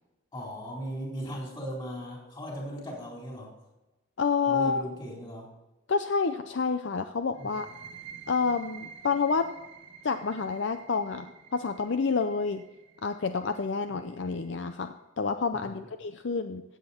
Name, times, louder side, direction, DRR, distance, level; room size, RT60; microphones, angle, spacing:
voice 1, 0.3-3.5 4.5-5.5 7.4-7.5 15.7-15.8, equal, 25° left, -2 dB, 3.9 m, -37 dB
voice 2, 4.2-4.9 5.9-7.7 8.3-9.5 10.0-12.6 13.0-16.6, left 5 dB, 60° left, 9 dB, 0.5 m, -29 dB
sound 1, 7.3-14.8, right 7 dB, 60° right, 1.5 m, -50 dB
15.5 x 7.9 x 4.3 m, 1.1 s
head